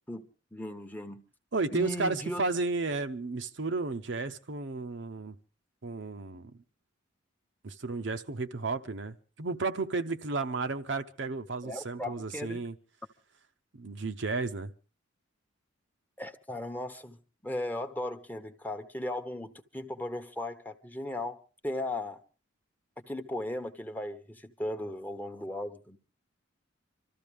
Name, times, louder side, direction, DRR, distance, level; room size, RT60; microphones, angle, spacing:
voice 1, 0.1-1.2 1.7-2.4 11.6-12.6 16.2-17.2 17.4-21.4 21.6-22.2 23.0-26.0, left 1 dB, 10° left, 0.9 m, -37 dB
voice 2, 1.5-5.3 5.8-6.5 7.6-12.7 13.7-14.7, right 3 dB, 60° right, 0.7 m, -33 dB
26.0 x 14.0 x 3.5 m
head